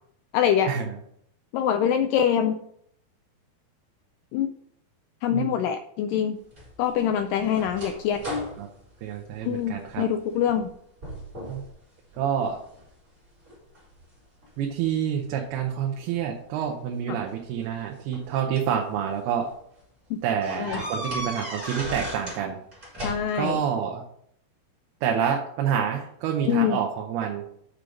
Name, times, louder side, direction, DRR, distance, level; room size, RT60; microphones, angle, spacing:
voice 1, 0.3-0.7 1.5-2.6 4.3-4.5 5.2-6.4 6.8-8.2 9.4-10.7 17.1-17.2 20.1-20.2 20.6-20.8 23.0-23.6 26.5-26.8, left 9 dB, 85° left, 8 dB, 1.9 m, -24 dB
sound 1, 6.5-9.9 10.4-10.7 11.0-11.7 12.1-12.8 13.4-14.9 16.0-16.2 17.4-18.8 19.3-19.5 19.8-19.9 20.4-22.4 22.7-23.5, equal, 20° right, 4.5 m, -36 dB
voice 2, 9.0-10.0 11.5-11.6 12.2-12.6 14.6-19.5 20.2-22.6 23.3-24.0 25.0-27.4, right 8 dB, 90° right, 1 dB, 2.9 m, -28 dB
7.4 x 6.5 x 5.2 m, 0.70 s
omnidirectional pair, 4.4 m